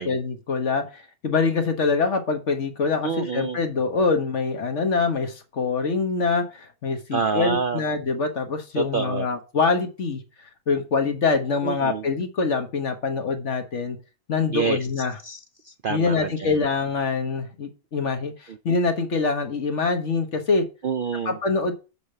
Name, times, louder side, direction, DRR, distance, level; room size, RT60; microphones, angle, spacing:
voice 1, 0.0-10.2 10.7-14.0 14.3-15.1 15.9-18.3 18.6-20.6 21.2-21.7, left 4 dB, 50° left, 6 dB, 1.5 m, -24 dB
voice 2, 3.0-3.6 7.1-7.8 8.8-9.3 11.6-12.1 14.5-14.9 15.2-16.6 18.5-18.6 20.8-21.4, right 5 dB, 85° right, 9 dB, 0.4 m, -28 dB
6.9 x 5.0 x 6.6 m, 0.31 s
omnidirectional pair, 1.6 m